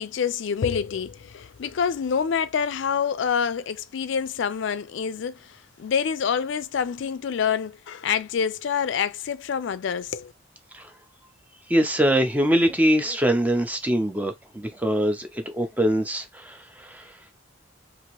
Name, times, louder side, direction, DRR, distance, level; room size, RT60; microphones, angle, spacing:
voice 1, 0.0-10.3, left 7 dB, 65° left, 0.4 m, -27 dB
voice 2, 11.7-17.2, equal, 10° right, 0.5 m, -23 dB
2.9 x 2.5 x 2.9 m
head